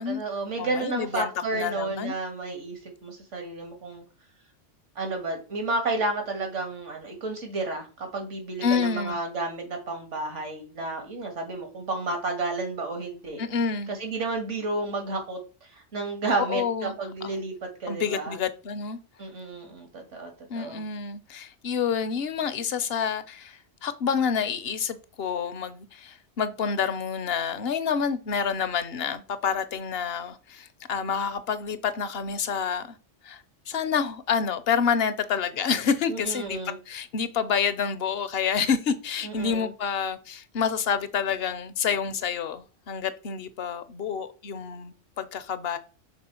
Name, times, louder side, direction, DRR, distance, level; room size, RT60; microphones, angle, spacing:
voice 1, 0.0-4.0 5.0-13.4 13.9-18.4 19.2-20.8 36.1-36.8 39.2-39.7, right 3 dB, 80° right, 2.1 m, -31 dB
voice 2, 0.6-2.2 8.6-9.2 13.4-13.9 16.4-17.3 17.9-19.0 20.5-33.0 33.2-36.6 36.9-45.8, left 6 dB, 60° left, 0.9 m, -28 dB
6.2 x 4.4 x 4.3 m
omnidirectional pair, 1.2 m